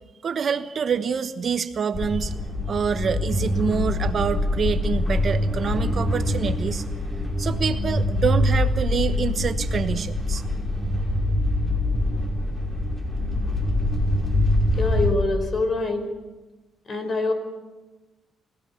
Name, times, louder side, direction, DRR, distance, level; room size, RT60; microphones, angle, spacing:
voice 1, 0.2-2.3 2.7-6.8 7.4-10.4, right 6 dB, 50° right, 10 dB, 1.1 m, -26 dB
sound 1, 1.9-15.1, left 1 dB, 15° left, 5.4 m, -24 dB
voice 2, 14.7-16.0 16.9-17.3, left 3 dB, 40° left, 8 dB, 5.1 m, -25 dB
27.5 x 16.0 x 7.1 m, 1.2 s
cardioid pair, 90°, 0 cm